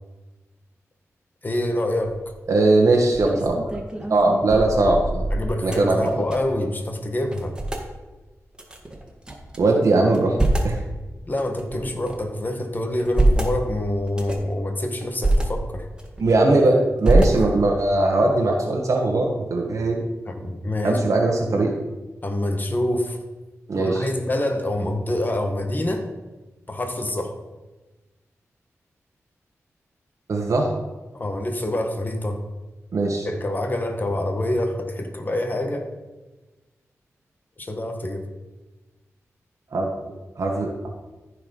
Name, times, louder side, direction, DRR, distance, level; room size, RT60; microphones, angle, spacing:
voice 1, 1.4-2.2 5.3-7.5 11.2-15.9 20.3-21.0 21.4-21.5 22.2-23.2 23.7-26.1 26.7-27.4 31.1-32.4 33.2-35.9 37.6-38.3, left 1 dB, 35° left, 4 dB, 1.5 m, -26 dB
sound 1, 2.0-2.4 2.9-6.6 6.9-7.0 7.3-7.9 8.5-9.6 10.0-10.8 11.4-12.3 12.8-13.5 14.1-14.5 15.0-15.4 15.9-16.6 17.0-17.8, right 1 dB, 15° right, 1.9 m, -24 dB
voice 2, 2.5-3.6 4.1-5.2 5.6-6.1 9.6-10.4 10.6-10.8 16.2-20.0 20.8-21.7 23.7-24.1 30.3-30.7 32.9-33.3 39.7-39.9 40.4-40.9, right 2 dB, 75° right, -1 dB, 1.4 m, -20 dB
14.0 x 4.8 x 5.3 m, 1.2 s
cardioid pair, 65°, 5 cm